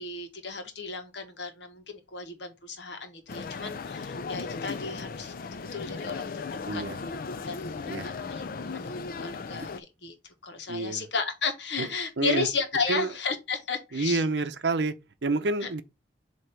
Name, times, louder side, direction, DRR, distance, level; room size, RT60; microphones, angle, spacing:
voice 1, 0.0-6.3 6.7-6.8 7.4-10.1 10.4-14.3 15.6-15.7, left 4 dB, 70° left, 1.3 m, -34 dB
sound 1, 3.3-9.8, left 4 dB, 50° left, 0.4 m, -36 dB
voice 2, 10.7-11.1 11.8-11.9 12.2-12.5 12.9-13.1 13.9-14.9 15.2-15.8, right 3 dB, 65° right, 0.7 m, -28 dB
7.7 x 2.9 x 4.5 m
head